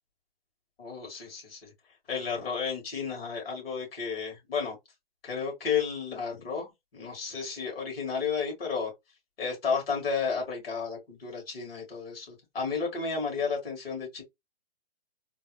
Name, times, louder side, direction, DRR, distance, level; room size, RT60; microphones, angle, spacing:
voice 1, 0.8-1.7 2.1-4.8 5.2-8.9 9.4-14.2, left 5 dB, 70° left, 2.5 m, -32 dB
3.8 x 2.1 x 3.2 m
hypercardioid pair, 135°, 31 cm